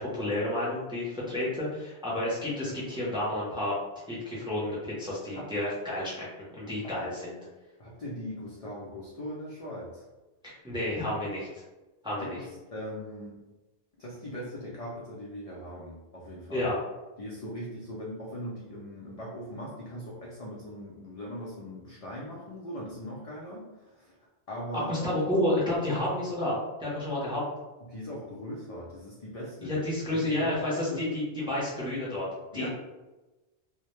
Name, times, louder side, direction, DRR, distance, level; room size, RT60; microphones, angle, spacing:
voice 1, 0.0-3.7 4.1-6.3 6.5-7.4 10.4-11.6 12.0-12.4 16.5-16.8 24.7-27.4 29.6-32.3 32.5-32.7, left 1 dB, 5° right, -6 dB, 0.4 m, -30 dB
voice 2, 7.8-10.0 12.2-13.4 14.0-16.7 17.2-24.2 24.5-25.1 27.8-29.8 30.1-31.0 32.5-32.7, equal, 70° left, -4 dB, 0.3 m, -40 dB
2.1 x 2.0 x 3.0 m, 1.1 s
omnidirectional pair, 1.2 m